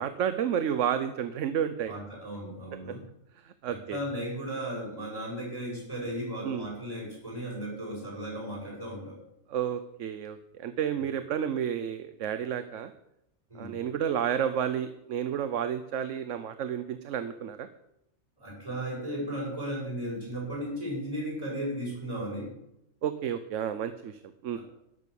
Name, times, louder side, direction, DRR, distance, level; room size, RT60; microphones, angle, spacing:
voice 1, 0.0-1.9 2.9-3.0 3.4-4.0 6.4-6.7 9.5-12.9 13.5-17.7 23.0-24.6, right 9 dB, 75° right, 11 dB, 1.1 m, -31 dB
voice 2, 1.9-3.0 3.7-9.2 13.5-13.8 18.4-22.6 24.5-24.6, equal, 25° right, -7 dB, 7.7 m, -35 dB
13.0 x 10.5 x 7.0 m, 0.81 s
omnidirectional pair, 1.3 m